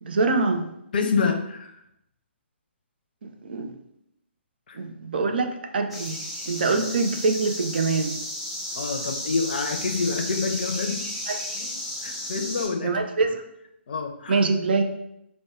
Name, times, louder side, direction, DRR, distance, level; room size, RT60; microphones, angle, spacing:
voice 1, 0.0-0.6 3.2-3.7 4.7-8.1 11.3-11.4 12.8-13.4 14.3-14.8, right 3 dB, 55° right, 6 dB, 0.5 m, -24 dB
voice 2, 0.9-1.7 4.7-4.8 8.7-11.0 11.3-11.7 12.0-13.0 13.9-14.4, left 4 dB, 50° left, 4 dB, 0.6 m, -27 dB
sound 1, 5.9-12.7, left 1 dB, ahead, 0.6 m, -33 dB
4.3 x 2.2 x 3.5 m, 0.79 s
figure-of-eight pair, 130°, 7 cm